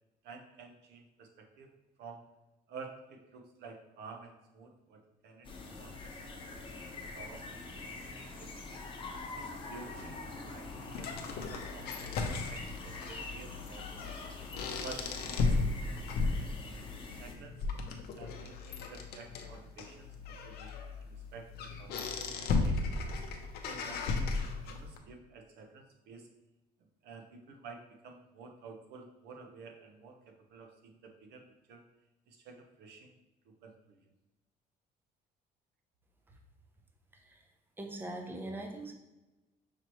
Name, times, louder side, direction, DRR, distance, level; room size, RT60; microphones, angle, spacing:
voice 1, 0.2-1.7 2.0-2.3 2.7-6.8 7.1-8.8 9.3-14.2 14.8-15.6 17.2-17.7 18.1-23.2 23.6-26.3 27.0-31.4 31.7-31.8 32.3-33.2 33.6-34.0, right 4 dB, 75° right, 3 dB, 0.7 m, -51 dB
sound 1, 5.4-17.3, left 3 dB, 30° left, 0.8 m, -45 dB
sound 2, 10.0-25.0, left 3 dB, 70° left, 0.6 m, -36 dB
voice 2, 37.1-37.4 37.8-38.9, right 1 dB, 10° right, 2 dB, 0.6 m, -41 dB
5.9 x 3.0 x 3.0 m, 1.0 s
cardioid pair, 110°, 17 cm